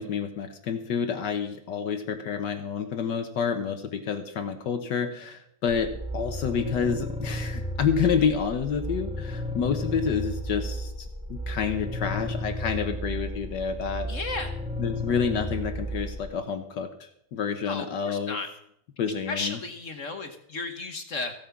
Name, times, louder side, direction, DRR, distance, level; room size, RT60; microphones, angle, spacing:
voice 1, 0.0-14.1 14.8-18.4 19.0-19.6, left 6 dB, 70° left, 7 dB, 1.6 m, -29 dB
sound 1, 5.7-16.3, equal, 5° right, 0.8 m, -33 dB
voice 2, 14.1-14.5 17.7-18.5 19.3-21.3, left 3 dB, 50° left, 6 dB, 1.3 m, -34 dB
15.5 x 8.8 x 5.9 m, 0.71 s
omnidirectional pair, 2.0 m